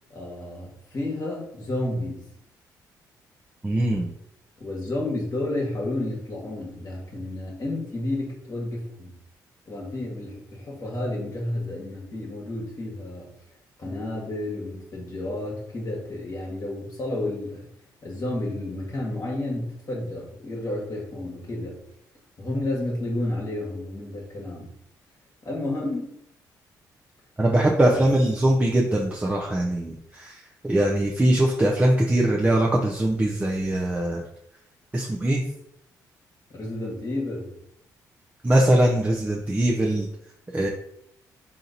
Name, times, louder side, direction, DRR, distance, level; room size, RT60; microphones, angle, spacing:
voice 1, 0.1-2.2 4.6-9.1 9.7-13.3 13.8-17.7 18.0-21.8 22.4-24.7 25.4-26.1 27.9-28.0 36.5-37.5, left 1 dB, 45° left, -3 dB, 1.4 m, -31 dB
voice 2, 3.6-4.1 27.4-30.4 30.6-34.2 34.9-35.4 38.4-40.1 40.5-40.7, right 1 dB, 15° right, -2 dB, 0.7 m, -21 dB
3.8 x 2.9 x 4.0 m, 0.74 s
hypercardioid pair, 45°, 9 cm